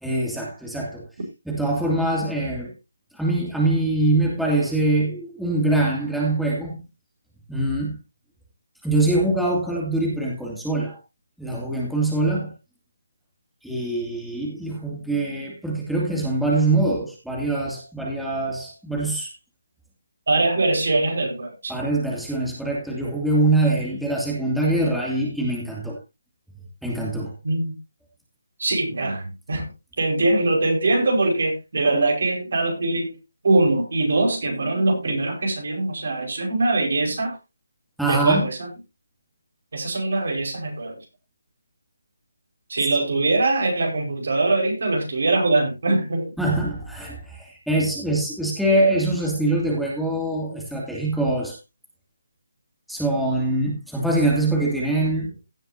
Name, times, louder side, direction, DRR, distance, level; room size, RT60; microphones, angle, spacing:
voice 1, 0.0-1.0 1.5-2.7 3.1-6.8 7.5-8.0 8.8-11.0 11.4-12.5 13.6-19.3 21.7-26.0 26.8-27.3 38.0-38.5 46.4-51.6 52.9-55.4, right 2 dB, ahead, 2.7 m, -23 dB
voice 2, 20.3-21.7 27.4-27.8 28.6-29.7 30.0-33.1 33.4-37.4 38.0-38.7 39.7-41.0 42.7-46.3, right 2 dB, 60° right, 5.2 m, -22 dB
16.5 x 7.7 x 2.8 m
figure-of-eight pair, 155°, 0 cm